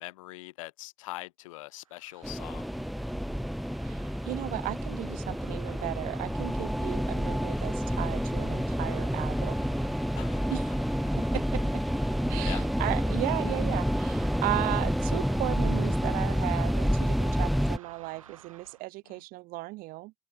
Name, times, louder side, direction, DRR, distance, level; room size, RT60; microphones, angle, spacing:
voice 1, 0.0-2.7 10.1-10.6 12.4-12.7 19.1-19.2, left 19 dB, 75° left, 1.2 m, -42 dB
sound 1, 1.8-18.9, right 9 dB, 85° right, 3.2 m, -53 dB
sound 2, 2.2-17.8, equal, ahead, 1.0 m, -29 dB
voice 2, 3.9-9.6 10.5-10.6 11.2-11.8 12.3-20.1, right 20 dB, 55° right, 0.5 m, -35 dB
open air
hypercardioid pair, 60°, 17 cm